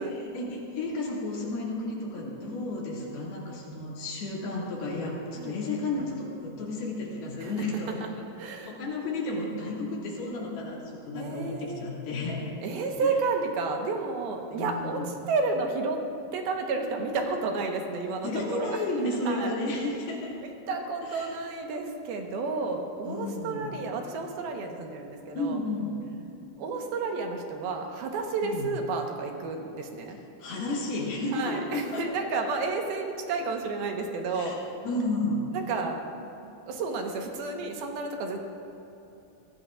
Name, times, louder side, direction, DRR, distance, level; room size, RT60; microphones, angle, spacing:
voice 1, 0.1-8.1 8.4-12.4 14.5-15.0 18.2-20.3 21.0-21.3 23.0-23.7 25.4-26.0 28.4-28.7 30.4-32.0 32.3-32.4 34.3-34.5 34.8-35.4, left 2 dB, 90° left, -4 dB, 4.3 m, -32 dB
voice 2, 2.1-2.7 5.4-5.6 7.4-7.5 8.0-8.1 8.4-8.8 11.1-11.8 12.6-16.0 16.3-18.8 19.3-19.5 19.9-20.0 20.7-25.6 26.6-30.2 31.3-34.6 35.5-36.0 36.7-38.4, right 4 dB, 85° right, 2 dB, 3.2 m, -31 dB
23.0 x 16.5 x 2.5 m, 2.8 s
omnidirectional pair, 4.2 m